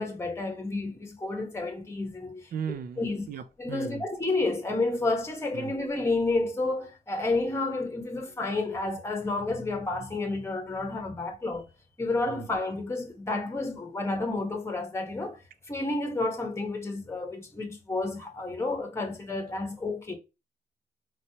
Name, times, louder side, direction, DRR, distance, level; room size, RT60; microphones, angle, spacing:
voice 1, 0.0-2.5 3.0-3.3 3.6-11.7 12.0-15.4 15.7-20.1, left 2 dB, 15° left, 1.0 m, -30 dB
voice 2, 2.5-4.1 5.5-5.7 12.3-12.5, right 7 dB, 50° right, 0.4 m, -37 dB
4.4 x 3.1 x 2.8 m
cardioid pair, 145°, 20 cm